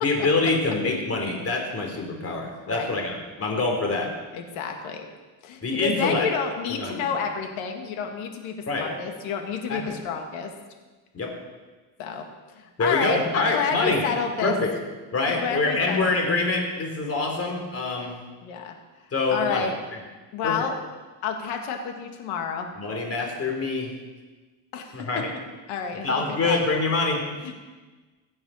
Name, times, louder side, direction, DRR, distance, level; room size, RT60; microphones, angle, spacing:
voice 1, 0.0-4.1 5.6-6.3 6.7-7.1 8.7-8.9 9.7-10.0 11.1-11.3 12.8-14.1 14.4-14.7 15.1-18.2 19.1-19.7 20.4-20.6 22.8-23.9 24.9-25.3 26.0-27.2, left 3 dB, 30° left, 1 dB, 3.3 m, -25 dB
voice 2, 4.3-5.1 5.4-10.5 12.0-12.3 12.6-14.5 15.3-16.1 18.4-18.8 19.3-19.7 20.3-20.7 21.2-22.7 24.7-25.1 25.7-26.6 27.4-27.6, left 6 dB, 90° left, 4 dB, 2.0 m, -30 dB
16.5 x 7.8 x 5.6 m, 1.3 s
cardioid pair, 125°, 47 cm